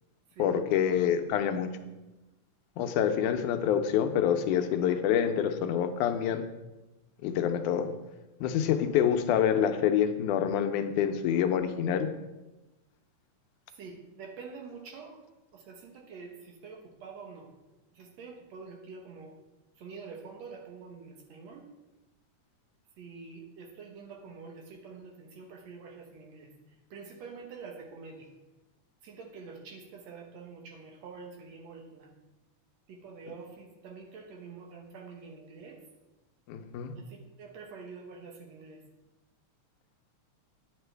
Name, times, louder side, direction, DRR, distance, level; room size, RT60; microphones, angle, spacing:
voice 1, 0.4-1.7 2.8-6.4 7.2-7.9 8.4-12.1 36.5-36.9, left 9 dB, 90° left, 7 dB, 2.2 m, -27 dB
voice 2, 13.8-15.2 15.5-17.5 18.0-19.3 19.8-21.6 23.0-26.5 26.9-28.3 29.0-32.1 32.9-35.8 37.0-38.8, right 5 dB, 65° right, 2 dB, 2.2 m, -46 dB
9.7 x 8.9 x 3.3 m, 1.0 s
omnidirectional pair, 3.4 m